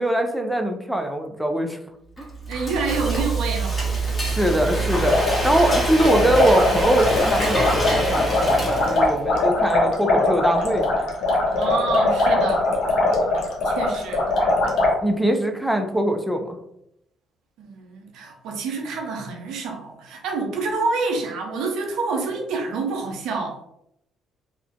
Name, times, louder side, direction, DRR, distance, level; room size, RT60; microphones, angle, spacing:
voice 1, 0.0-1.8 2.2-2.3 4.2-11.0 15.0-16.6, right 1 dB, ahead, 4 dB, 0.5 m, -22 dB
Frying (food), 2.2-9.2, right 2 dB, 30° left, 1.1 m, -25 dB
voice 2, 2.5-3.8 11.6-12.7 13.6-14.3 17.6-23.6, right 4 dB, 70° right, 2 dB, 0.5 m, -27 dB
sound 1, 5.0-14.9, left 2 dB, 65° left, 0.6 m, -21 dB
2.4 x 2.1 x 2.5 m, 0.78 s
hypercardioid pair, 50°, 0 cm